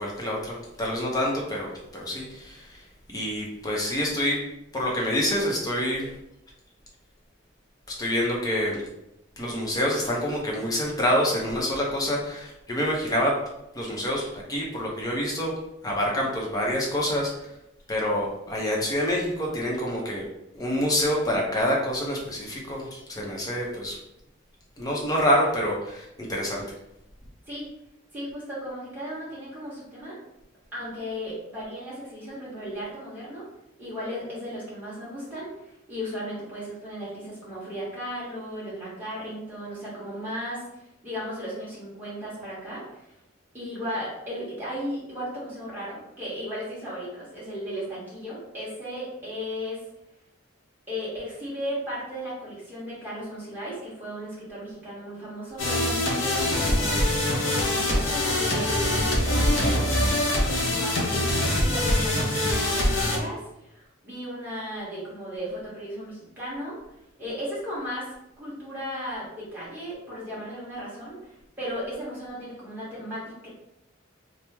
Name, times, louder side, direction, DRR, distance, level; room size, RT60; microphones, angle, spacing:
voice 1, 0.0-2.8 3.1-4.5 4.7-6.1 7.9-8.8 9.4-13.4 13.7-15.5 15.8-17.3 17.9-20.3 20.5-24.0 24.8-26.6, equal, 20° left, -2 dB, 0.6 m, -27 dB
voice 2, 28.1-30.2 30.7-33.5 33.8-43.1 43.5-49.8 50.9-66.8 67.2-73.5, equal, 10° right, -9 dB, 1.2 m, -36 dB
sound 1, 55.6-63.2, left 1 dB, 80° left, 0.7 m, -24 dB
3.0 x 2.0 x 3.3 m, 0.86 s
head